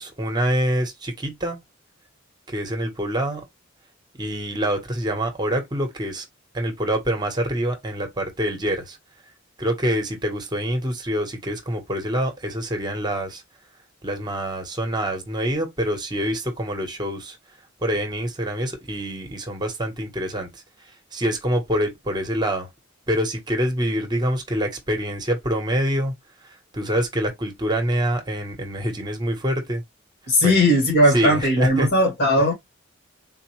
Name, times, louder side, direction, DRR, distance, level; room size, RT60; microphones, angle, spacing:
voice 1, 0.0-1.6 2.5-3.4 4.2-6.2 6.5-9.0 9.6-13.4 14.0-17.4 17.8-20.6 21.1-22.7 23.1-26.1 26.7-29.8 30.4-30.6 31.1-31.9, equal, 20° right, 1.0 m, -25 dB
voice 2, 30.3-32.5, left 1 dB, 55° left, 1.9 m, -18 dB
3.9 x 2.4 x 2.9 m
head